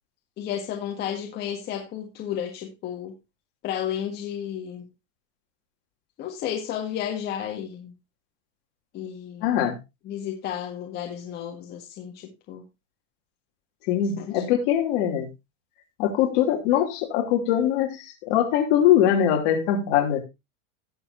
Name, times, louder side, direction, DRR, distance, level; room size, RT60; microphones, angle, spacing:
voice 1, 0.4-3.2 3.6-4.9 6.2-7.9 8.9-9.5 10.0-12.6 14.2-14.4, left 9 dB, 25° left, 1 dB, 1.7 m, -32 dB
voice 2, 9.4-9.8 13.9-15.3 16.0-20.2, left 10 dB, 45° left, 2 dB, 3.0 m, -22 dB
18.0 x 7.3 x 2.7 m, 0.23 s
supercardioid pair, 165°, 38 cm